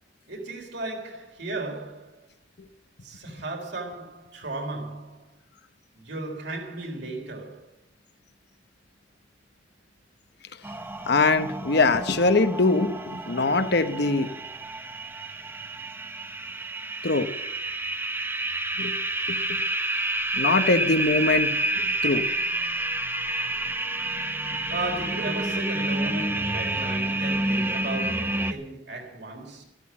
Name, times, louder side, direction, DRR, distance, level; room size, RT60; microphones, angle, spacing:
voice 1, 0.3-2.2 3.0-5.3 5.9-7.6 24.7-29.6, right 2 dB, 60° right, 4.0 m, -35 dB
sound 1, 10.6-28.5, right 2 dB, 10° right, 0.9 m, -29 dB
voice 2, 11.1-14.3 17.0-17.3 18.8-18.9 19.3-19.6 20.3-22.3, left 3 dB, 60° left, 1.0 m, -23 dB
13.5 x 13.0 x 7.3 m
head